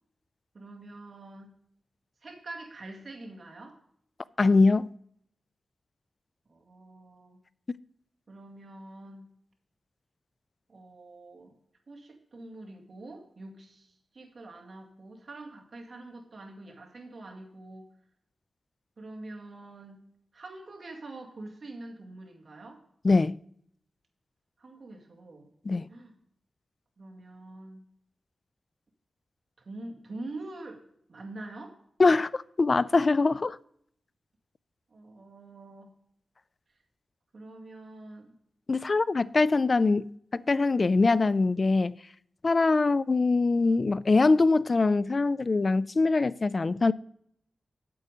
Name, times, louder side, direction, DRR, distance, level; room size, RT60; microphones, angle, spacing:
voice 1, 0.5-1.6 2.2-3.8 6.5-7.4 8.3-9.3 10.7-11.6 11.9-17.9 19.0-20.1 20.3-22.9 24.6-25.5 25.9-26.2 27.0-27.8 29.7-30.8 31.1-31.8 34.9-35.9 37.3-38.4, right 2 dB, 55° right, 2.1 m, -45 dB
voice 2, 4.4-4.9 23.0-23.4 25.7-25.9 32.0-33.6 38.7-41.9 42.4-46.9, left 3 dB, 45° left, 0.3 m, -23 dB
8.5 x 8.0 x 5.0 m
cardioid pair, 70°, 0 cm